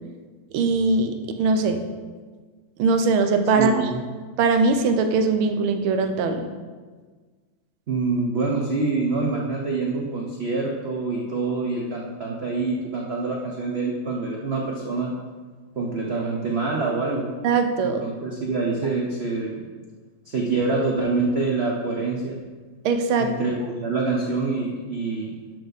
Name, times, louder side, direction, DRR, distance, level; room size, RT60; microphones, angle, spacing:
voice 1, 0.5-1.8 2.8-3.7 4.4-6.5 17.4-18.0 22.8-23.3, right 4 dB, 90° right, 7 dB, 1.6 m, -21 dB
voice 2, 3.5-4.0 7.9-15.1 15.7-17.3 17.8-19.6 20.3-22.4 23.2-25.3, right 3 dB, 55° right, -1 dB, 0.7 m, -26 dB
11.5 x 4.7 x 4.0 m, 1.4 s
omnidirectional pair, 2.2 m